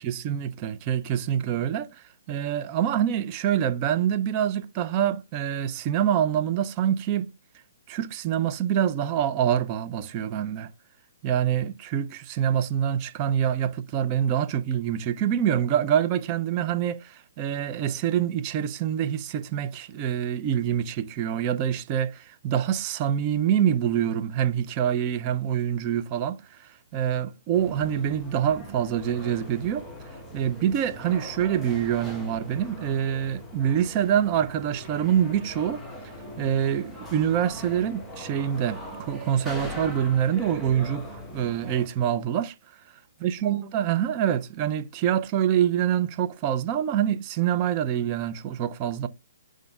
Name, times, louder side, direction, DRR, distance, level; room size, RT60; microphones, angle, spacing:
voice 1, 0.0-1.9 2.3-7.3 7.9-10.7 11.2-29.8 30.3-35.8 36.4-42.5 43.2-49.1, right 9 dB, 30° right, 0.6 m, -26 dB
sound 1, 27.5-41.9, left 1 dB, 5° left, 1.2 m, -41 dB
10.5 x 3.7 x 2.4 m
figure-of-eight pair, 130°, 0 cm